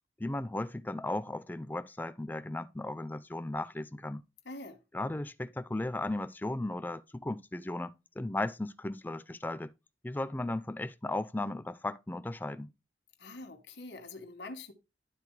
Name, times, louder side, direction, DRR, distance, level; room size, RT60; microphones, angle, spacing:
voice 1, 0.2-4.2 4.9-9.7 10.0-12.7, left 2 dB, 10° left, 0.3 m, -36 dB
voice 2, 4.4-4.8 13.2-14.7, left 2 dB, 80° left, 1.4 m, -44 dB
12.0 x 4.0 x 3.2 m
head